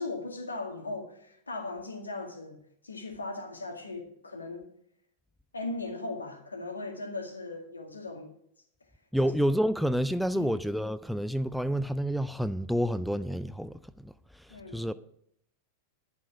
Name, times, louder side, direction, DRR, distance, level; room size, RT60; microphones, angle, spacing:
voice 1, 0.0-2.6 2.8-4.7 5.5-8.3 9.2-9.3 10.3-10.5 14.5-14.9, left 2 dB, 75° left, 2.0 m, -38 dB
voice 2, 9.1-14.9, equal, ahead, 0.4 m, -29 dB
11.0 x 8.2 x 6.2 m
figure-of-eight pair, 90°, 0 cm